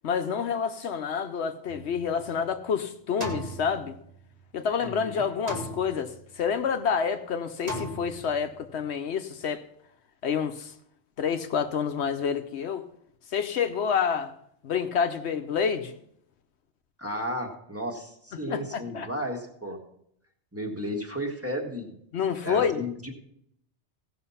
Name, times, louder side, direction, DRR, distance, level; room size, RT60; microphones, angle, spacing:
voice 1, 0.0-3.9 4.5-6.1 6.4-9.6 10.2-10.7 11.2-12.8 13.3-14.3 14.6-15.9 18.5-19.1 22.1-22.8, left 7 dB, 70° left, 8 dB, 1.0 m, -28 dB
sound 1, 1.7-2.6 3.2-4.5 5.5-6.4 7.7-8.6, equal, 35° right, 1.6 m, -37 dB
voice 2, 4.8-5.2 17.0-19.8 20.5-22.0 22.4-23.1, equal, 10° right, 1 dB, 1.6 m, -34 dB
16.0 x 6.0 x 5.6 m, 0.71 s
omnidirectional pair, 1.2 m